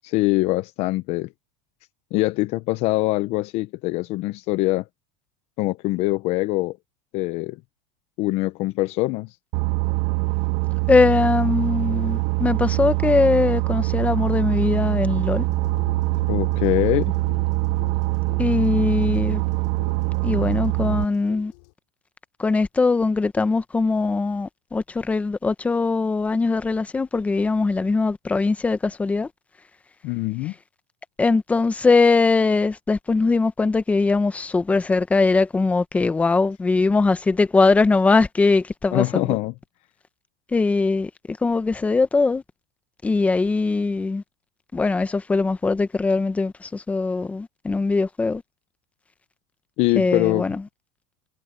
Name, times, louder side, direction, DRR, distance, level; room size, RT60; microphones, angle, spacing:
voice 1, 0.0-1.3 2.1-4.8 5.6-6.8 7.1-7.6 8.2-9.3 16.3-17.1 30.0-30.5 38.9-39.5 49.8-50.5, left 19 dB, 40° left, 0.6 m, -23 dB
Boat Water vehicle, 9.5-21.0, right 26 dB, 45° right, 0.6 m, -23 dB
voice 2, 10.9-15.5 18.4-19.4 20.2-21.5 22.4-29.3 31.2-39.4 40.5-42.4 43.0-44.2 44.7-48.4 49.9-50.6, left 3 dB, 10° left, 0.7 m, -21 dB
sound 1, 15.5-21.7, left 31 dB, 65° left, 7.1 m, -44 dB
supercardioid pair, 165°, 15 cm